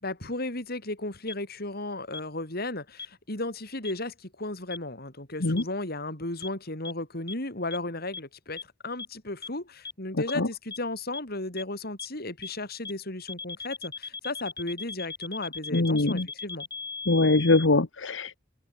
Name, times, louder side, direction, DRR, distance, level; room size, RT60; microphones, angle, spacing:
voice 1, 0.0-16.7, left 2 dB, 55° left, 5.2 m, -35 dB
sound 1, 1.3-1.4 2.1-2.2 3.0-3.1 3.9-4.0 4.7-4.8 5.6-5.7 6.4-6.5 6.9-7.0 7.3-7.4 7.7-7.8 8.1-8.2 8.6-8.7 9.0-9.1 9.4-9.5 9.9-10.0 10.3-10.4 10.7-10.8 11.1-11.2 11.6-11.7 12.0-12.1 12.4-12.5 12.9-13.0 13.3-17.7, left 4 dB, 20° left, 6.1 m, -37 dB
voice 2, 15.7-16.3 17.1-18.3, left 2 dB, 85° left, 1.3 m, -22 dB
open air
head